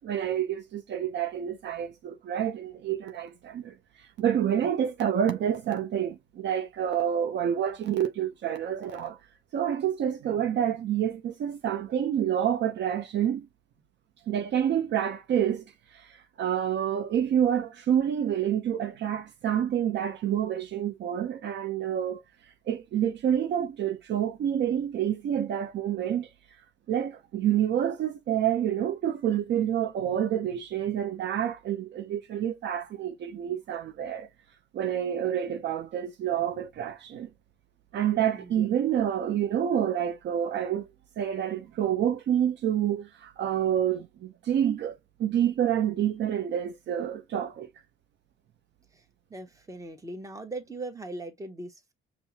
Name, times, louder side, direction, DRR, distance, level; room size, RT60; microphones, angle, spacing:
voice 1, 0.0-3.7 4.2-9.2 9.5-13.5 14.3-15.6 15.9-22.2 22.7-26.3 26.9-34.3 34.7-37.3 37.9-40.9 41.2-47.7, right 9 dB, 65° right, 0.5 m, -28 dB
voice 2, 38.3-38.8 48.9-49.0 49.3-51.9, right 2 dB, 15° right, 0.9 m, -40 dB
5.4 x 2.0 x 2.7 m
cardioid pair, 90°, 20 cm